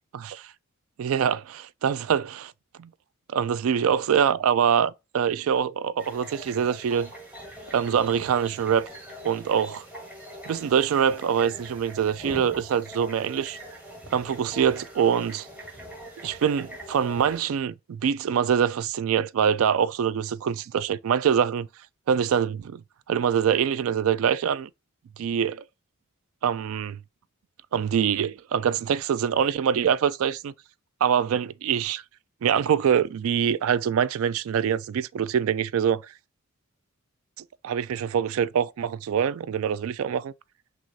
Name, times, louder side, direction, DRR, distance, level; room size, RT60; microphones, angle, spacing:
voice 1, 1.0-2.5 2.8-2.9 3.3-7.1 7.7-8.9 9.2-9.9 10.5-13.6 14.1-15.5 16.2-21.7 22.1-22.8 23.1-24.7 25.2-25.6 26.4-27.0 27.7-30.5 31.0-32.0 32.4-36.1 37.6-40.3, right 8 dB, 70° right, 0.3 m, -24 dB
sound 1, 6.0-17.4, equal, 5° right, 1.4 m, -43 dB
6.0 x 2.4 x 2.6 m
head